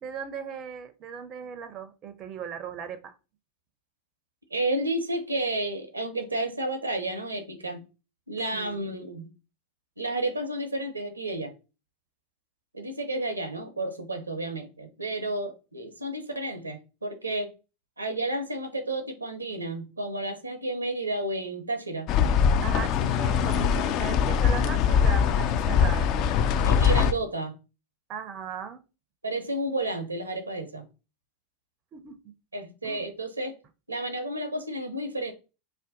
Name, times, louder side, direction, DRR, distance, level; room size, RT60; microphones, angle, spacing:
voice 1, 0.0-3.1 8.5-8.9 22.6-26.2 28.1-28.8 31.9-32.2 32.8-33.1, right 7 dB, 35° right, 0.4 m, -38 dB
voice 2, 4.5-7.8 8.3-9.3 10.0-11.5 12.7-17.5 18.0-22.1 26.6-27.6 29.2-30.8 32.5-33.6 33.9-35.3, right 1 dB, 90° right, 0.5 m, -31 dB
sound 1, 22.1-27.1, left 7 dB, 45° left, 0.3 m, -22 dB
2.5 x 2.1 x 3.7 m
figure-of-eight pair, 90°, 0 cm